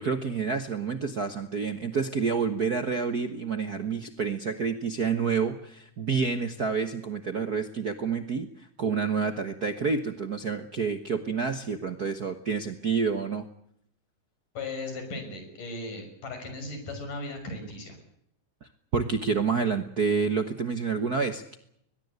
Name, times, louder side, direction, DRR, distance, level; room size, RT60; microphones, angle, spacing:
voice 1, 0.0-13.5 18.9-21.6, right 5 dB, 55° right, 8 dB, 1.1 m, -28 dB
voice 2, 14.5-18.0, left 2 dB, 90° left, 6 dB, 7.8 m, -37 dB
21.5 x 21.5 x 8.2 m, 0.72 s
omnidirectional pair, 3.6 m